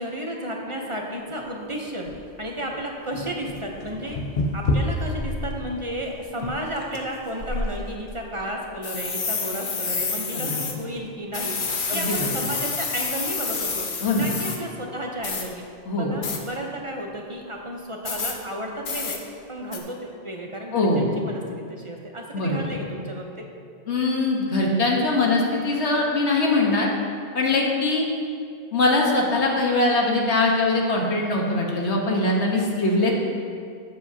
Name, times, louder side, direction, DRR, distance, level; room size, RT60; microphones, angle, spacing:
voice 1, 0.0-2.1 2.4-4.2 4.5-13.8 14.1-15.6 15.9-19.2 19.5-23.4, right 1 dB, 30° right, 0 dB, 0.8 m, -33 dB
sound 1, 1.3-1.4 2.1-2.2 2.8-2.9 3.1-5.6 5.9-6.0 6.4-7.0 7.4-8.2 8.8-10.7 11.3-14.6 15.2-15.4 16.2-16.4 18.0-18.3 18.8-19.2 19.7-19.8, left 3 dB, 50° left, 0.9 m, -28 dB
voice 2, 10.3-10.7 11.9-12.3 14.0-14.3 15.8-16.1 20.7-21.1 22.3-22.6 23.9-26.9 27.3-28.1 28.7-33.1, left 2 dB, 70° left, -1 dB, 1.5 m, -22 dB
12.0 x 7.7 x 2.8 m, 2.3 s
omnidirectional pair, 1.2 m